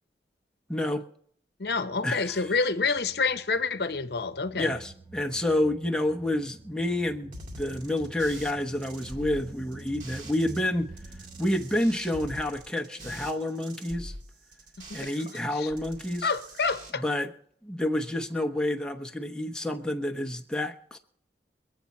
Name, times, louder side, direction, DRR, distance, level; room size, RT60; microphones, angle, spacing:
voice 1, 0.7-1.0 2.0-2.5 4.6-10.9 11.4-14.1 14.9-16.3 16.9-17.3 17.6-21.0, left 1 dB, 5° left, 0.9 m, -29 dB
voice 2, 1.6-4.7 14.9-15.1 15.6-15.7 16.2-17.0, left 4 dB, 65° left, 0.8 m, -28 dB
sound 1, 1.6-11.8, right 3 dB, 20° right, 0.6 m, -49 dB
sound 2, 7.3-10.6 10.9-15.4 15.7-16.9, right 1 dB, 45° right, 2.1 m, -44 dB
24.0 x 8.3 x 4.3 m
head